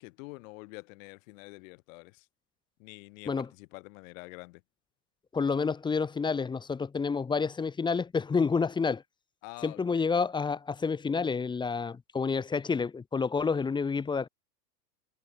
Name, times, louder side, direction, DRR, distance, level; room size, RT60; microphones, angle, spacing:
voice 1, 0.0-2.3 2.8-4.6 9.4-10.2, left 26 dB, 50° left, 3.8 m, -47 dB
voice 2, 5.3-9.0 9.6-14.3, left 5 dB, 10° left, 0.8 m, -29 dB
hypercardioid pair, 95°, 49 cm